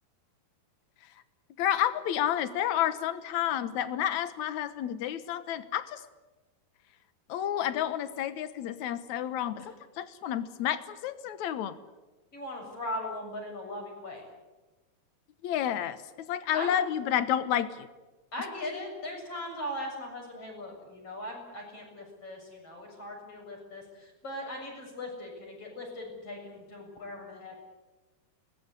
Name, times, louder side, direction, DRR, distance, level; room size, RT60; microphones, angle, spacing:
voice 1, 1.6-6.0 7.3-11.8 15.4-16.0 16.3-17.9, left 10 dB, 70° left, 13 dB, 1.8 m, -30 dB
voice 2, 12.3-14.2 16.5-16.7 18.3-27.6, left 1 dB, 35° left, 0 dB, 8.3 m, -39 dB
23.0 x 20.0 x 9.9 m, 1.2 s
omnidirectional pair, 4.8 m